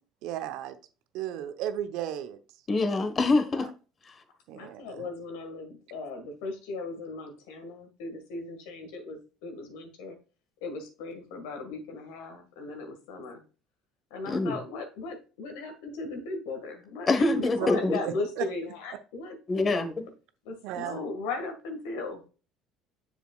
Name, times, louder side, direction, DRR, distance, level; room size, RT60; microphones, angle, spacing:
voice 1, 0.2-0.8 1.1-2.4 4.5-5.1 17.6-17.7 18.0-18.4 20.6-21.0, right 11 dB, 65° right, 0.8 m, -34 dB
voice 2, 2.7-3.7 14.3-14.6 17.1-18.0 19.5-19.9, left 3 dB, 35° left, 1.3 m, -25 dB
voice 3, 4.5-10.2 10.6-13.4 14.1-19.4 20.5-22.3, left 3 dB, 75° left, 1.7 m, -37 dB
7.3 x 7.1 x 2.4 m
hypercardioid pair, 65°, 0 cm